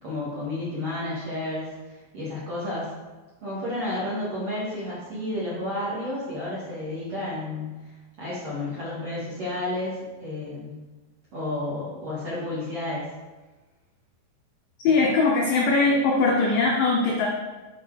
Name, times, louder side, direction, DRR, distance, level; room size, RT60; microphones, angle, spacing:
voice 1, 0.0-2.9 3.4-10.7 11.3-13.1, left 1 dB, 40° right, -9 dB, 2.5 m, -31 dB
voice 2, 14.8-17.3, left 3 dB, 90° left, -1 dB, 1.9 m, -21 dB
8.5 x 5.3 x 5.0 m, 1.2 s
omnidirectional pair, 5.2 m